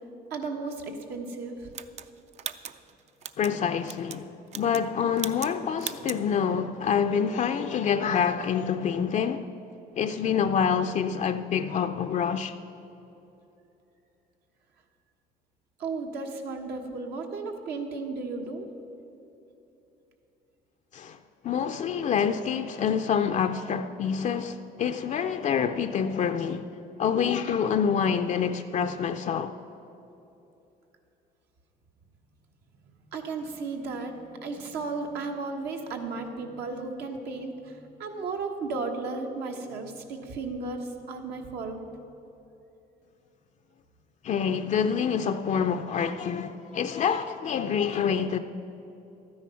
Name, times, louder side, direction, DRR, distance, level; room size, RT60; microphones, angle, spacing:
voice 1, 0.3-1.6 15.8-18.7 33.1-41.8, right 3 dB, 75° right, 1.4 m, -34 dB
sound 1, 1.7-3.5 3.9-4.2 4.5-4.9 5.2-5.5 5.8-6.2, right 8 dB, 40° right, 0.5 m, -38 dB
voice 2, 3.4-4.3 4.5-9.5 10.0-12.5 20.9-21.2 21.4-26.7 27.0-29.5 44.2-48.4, left 7 dB, 45° left, 0.4 m, -27 dB
12.5 x 9.5 x 5.7 m
cardioid pair, 110°, 17 cm